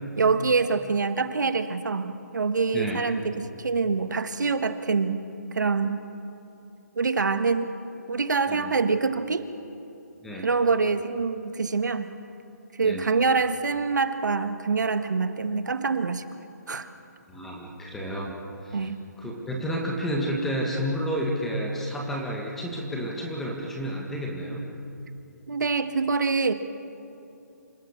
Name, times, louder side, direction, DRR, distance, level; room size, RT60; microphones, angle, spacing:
voice 1, 0.2-5.2 5.5-6.0 6.9-7.7 8.1-9.5 10.4-12.1 12.8-16.2 16.7-16.9 18.7-19.0 25.5-26.5, right 4 dB, 75° right, 9 dB, 1.6 m, -25 dB
voice 2, 17.3-18.3 18.6-18.8 19.2-24.7, equal, 5° left, -1 dB, 1.6 m, -30 dB
27.0 x 17.0 x 7.2 m, 2.7 s
hypercardioid pair, 175°, 10 cm